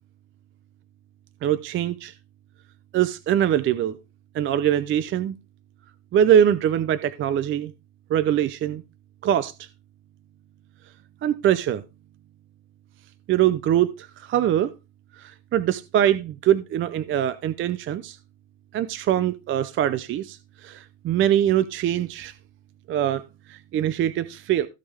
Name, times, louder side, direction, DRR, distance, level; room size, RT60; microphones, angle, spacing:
voice 1, 1.4-2.1 2.9-4.0 4.3-5.3 6.1-7.7 8.1-8.8 9.2-9.5 11.2-11.8 13.3-14.7 15.2-18.2 18.7-22.3 22.9-23.2 23.5-24.7, right 10 dB, 30° right, 0.5 m, -23 dB
16.0 x 5.4 x 3.4 m
cardioid pair, 145°, 41 cm